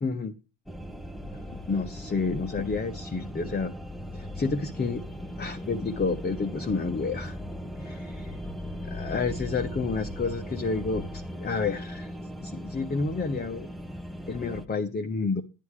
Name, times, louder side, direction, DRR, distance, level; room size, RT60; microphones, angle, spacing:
voice 1, 0.0-0.3 1.3-1.4 1.7-3.7 4.1-5.0 5.4-7.4 7.8-8.3 8.8-12.1 12.4-13.7 14.3-15.4, left 4 dB, 20° left, 1.1 m, -30 dB
sound 1, 0.7-14.7, left 1 dB, ahead, 1.0 m, -38 dB
12.0 x 9.6 x 3.3 m
hypercardioid pair, 70°, 49 cm